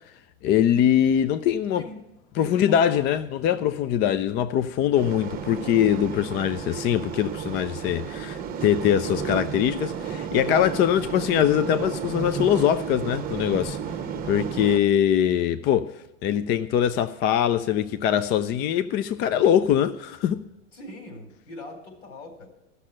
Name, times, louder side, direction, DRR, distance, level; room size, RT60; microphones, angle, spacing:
voice 1, 0.4-1.8 2.4-13.8 14.2-20.4, left 10 dB, 30° left, 0.4 m, -22 dB
voice 2, 1.6-2.0 2.3-3.6 4.4-4.7 20.7-22.5, left 2 dB, 70° left, 4.1 m, -42 dB
sound 1, 4.9-14.8, right 7 dB, 25° right, 1.0 m, -33 dB
13.0 x 6.7 x 8.6 m
hypercardioid pair, 105°, 38 cm